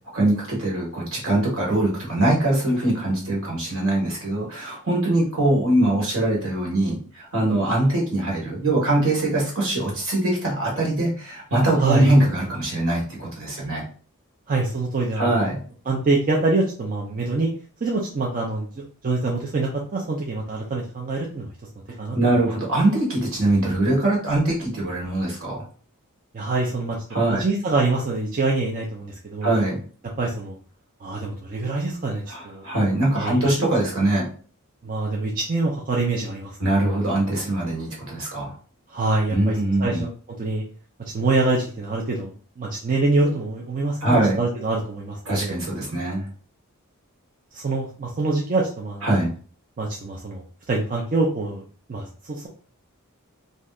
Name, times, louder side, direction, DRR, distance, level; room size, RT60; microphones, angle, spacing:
voice 1, 0.1-13.8 15.2-15.6 22.1-25.6 27.1-27.4 29.4-29.8 32.3-34.2 36.6-38.5 39.3-40.0 44.0-44.4 45.2-46.2 49.0-49.3, right 1 dB, 65° right, -3 dB, 1.4 m, -22 dB
voice 2, 14.5-15.5 15.9-17.5 17.8-21.5 22.0-22.2 26.3-27.0 27.3-29.5 30.2-30.5 31.0-32.6 33.2-33.4 34.8-36.6 38.9-40.1 40.4-40.6 41.1-45.5 47.5-49.1 49.8-51.6 51.9-52.5, right 3 dB, 40° right, -2 dB, 0.5 m, -25 dB
3.2 x 2.7 x 2.4 m, 0.42 s
head